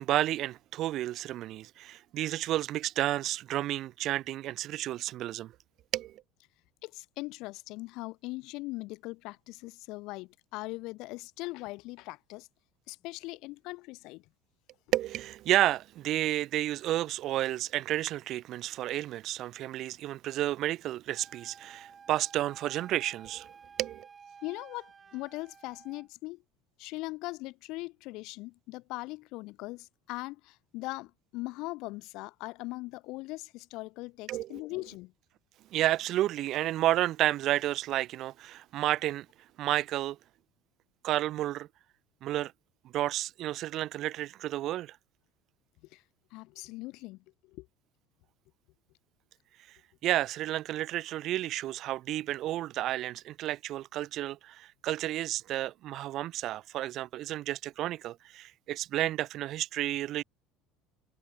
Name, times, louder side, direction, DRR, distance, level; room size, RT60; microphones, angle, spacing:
voice 1, 0.0-5.5 5.9-6.2 14.9-23.5 23.8-24.1 34.3-34.6 35.7-39.3 39.6-40.2 41.0-41.7 42.2-42.5 42.9-45.0 50.0-60.2, right 14 dB, 50° right, 0.4 m, -31 dB
voice 2, 6.8-12.5 12.9-14.2 24.4-26.4 26.8-35.1 45.9-46.0 46.3-47.7, left 22 dB, 55° left, 1.2 m, -40 dB
Wind instrument woodwind instrument, 21.1-26.1, right 6 dB, 30° right, 7.4 m, -53 dB
figure-of-eight pair, 65°, 0 cm